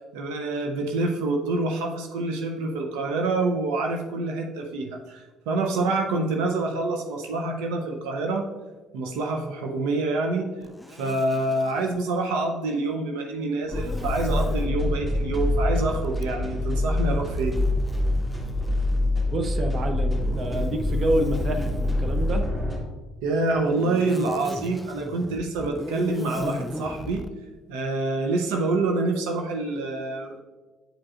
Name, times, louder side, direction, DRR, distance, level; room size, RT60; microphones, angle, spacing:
voice 1, 0.1-8.5 8.9-10.5 10.9-17.6 23.2-27.2 27.7-30.4, right 2 dB, 80° right, 2 dB, 0.6 m, -26 dB
Zipper (clothing), 10.6-12.0 13.6-14.7 16.1-19.4 20.2-22.4 23.4-27.3, left 1 dB, 5° left, 0.4 m, -40 dB
sound 1, 13.7-22.8, left 2 dB, 15° right, 1.8 m, -25 dB
voice 2, 19.3-22.4, right 1 dB, 45° right, 6 dB, 0.7 m, -28 dB
8.8 x 4.8 x 2.5 m, 1.2 s
supercardioid pair, 70°, 0 cm